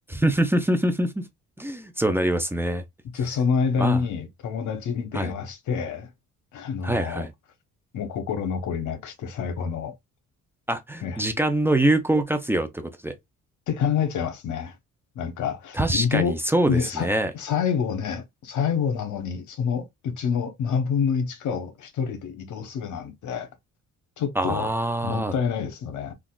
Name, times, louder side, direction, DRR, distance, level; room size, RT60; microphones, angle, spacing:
voice 1, 0.1-1.3 1.6-2.8 3.8-4.0 5.1-5.3 6.8-7.3 10.7-13.1 15.7-17.3 24.4-25.3, right 1 dB, 10° right, 0.5 m, -24 dB
voice 2, 3.1-6.1 6.5-7.3 7.9-9.9 11.0-11.2 13.7-14.8 15.1-16.4 16.7-17.1 17.3-23.5 24.2-24.7 25.0-26.1, left 6 dB, 75° left, 1.1 m, -27 dB
3.7 x 2.4 x 2.3 m
cardioid pair, 90°, 30 cm